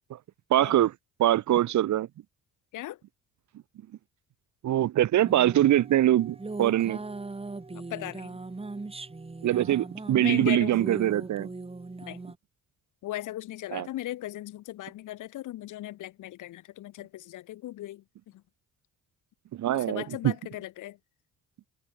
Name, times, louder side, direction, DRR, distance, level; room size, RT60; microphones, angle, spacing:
voice 1, 0.5-0.9 1.2-2.1 4.6-7.0 9.4-11.5 13.7-13.9 19.5-20.3, right 13 dB, 70° right, 1.5 m, -23 dB
sound 1, 5.3-12.4, right 3 dB, 20° right, 3.0 m, -39 dB
voice 2, 7.7-8.4 10.2-10.8 12.0-12.2 13.0-18.0 19.7-21.0, left 15 dB, 85° left, 5.4 m, -37 dB
cardioid pair, 90°, 30 cm